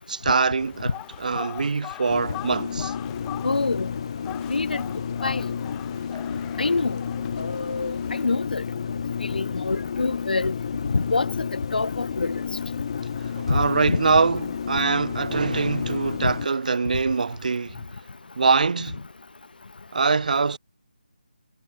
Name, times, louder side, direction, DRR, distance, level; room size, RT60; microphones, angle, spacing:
voice 1, 0.1-0.9 1.2-2.9 13.4-17.8 18.4-19.0 19.9-20.6, right 4 dB, 55° right, 0.9 m, -23 dB
sound 1, 0.6-8.3, left 26 dB, 10° left, 1.0 m, -42 dB
sound 2, 2.1-16.5, left 7 dB, 35° left, 0.3 m, -31 dB
voice 2, 3.4-3.9 4.5-4.8 5.2-5.5 6.6-7.0 7.4-8.6 9.2-10.5 10.9-12.4 13.5-13.6 13.8-14.0 16.2-16.3, left 3 dB, 65° left, 1.6 m, -26 dB
figure-of-eight pair, 160°, 5 cm